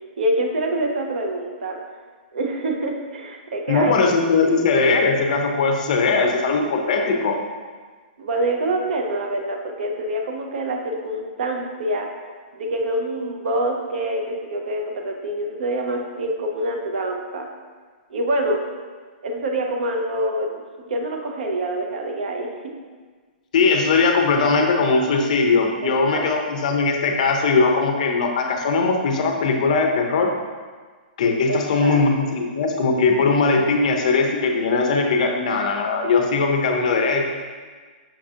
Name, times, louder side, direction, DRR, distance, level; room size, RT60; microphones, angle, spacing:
voice 1, 0.2-1.8 2.3-4.6 8.2-12.1 12.5-17.5 18.1-18.6 19.2-22.8 25.8-26.3 31.5-32.3, right 1 dB, 70° right, 2 dB, 0.6 m, -26 dB
voice 2, 3.7-7.4 23.5-30.3 31.2-37.3, left 4 dB, 50° left, 2 dB, 0.4 m, -20 dB
5.7 x 2.7 x 2.4 m, 1.5 s
hypercardioid pair, 175°, 5 cm